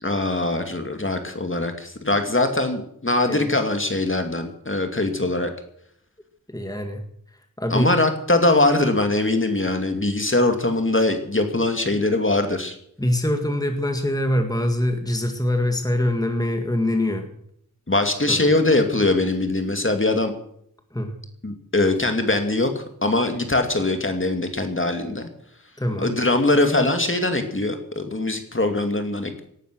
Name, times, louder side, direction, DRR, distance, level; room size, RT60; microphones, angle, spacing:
voice 1, 0.0-5.5 7.7-12.8 17.9-20.3 21.4-25.3 26.0-29.4, left 2 dB, 35° left, 6 dB, 2.4 m, -22 dB
voice 2, 6.5-7.0 7.6-7.9 13.0-17.3 18.3-18.6 20.9-21.1 25.8-26.1, left 1 dB, 10° left, 5 dB, 1.9 m, -24 dB
18.5 x 11.5 x 6.3 m, 0.70 s
wide cardioid pair, 65°, 34 cm